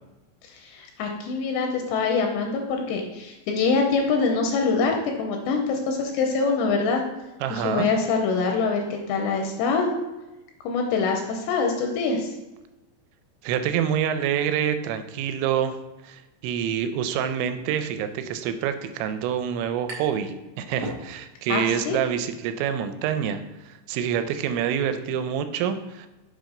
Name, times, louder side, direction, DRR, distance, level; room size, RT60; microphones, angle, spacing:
voice 1, 0.6-7.0 7.5-9.9 10.6-12.3 21.5-22.0, left 4 dB, 80° left, 3 dB, 2.8 m, -24 dB
voice 2, 7.4-7.9 13.4-15.8 16.0-26.1, right 9 dB, 85° right, 9 dB, 2.9 m, -27 dB
sound 1, 19.9-20.3 20.6-21.5, right 1 dB, 70° right, 1.7 m, -38 dB
7.2 x 5.3 x 3.8 m, 1.1 s
omnidirectional pair, 5.3 m